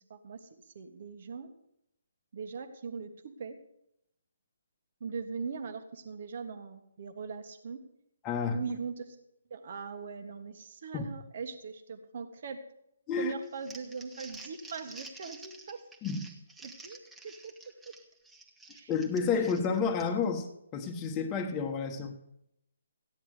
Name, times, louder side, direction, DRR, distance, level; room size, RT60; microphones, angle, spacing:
voice 1, 0.0-1.5 2.3-3.6 5.0-7.8 8.5-9.2 9.5-12.6 13.2-15.8 16.6-17.5 17.8-17.9 18.7-18.9 19.2-19.3, right 5 dB, 50° right, 7 dB, 1.6 m, -40 dB
voice 2, 8.2-8.6 10.9-11.1 13.1-13.3 16.0-16.3 18.9-20.5 20.7-22.1, left 5 dB, 20° left, 3 dB, 1.2 m, -30 dB
Crumpling crinkling, 13.4-20.3, right 3 dB, 5° right, 1.2 m, -50 dB
14.5 x 9.9 x 5.0 m, 0.79 s
figure-of-eight pair, 150°, 0 cm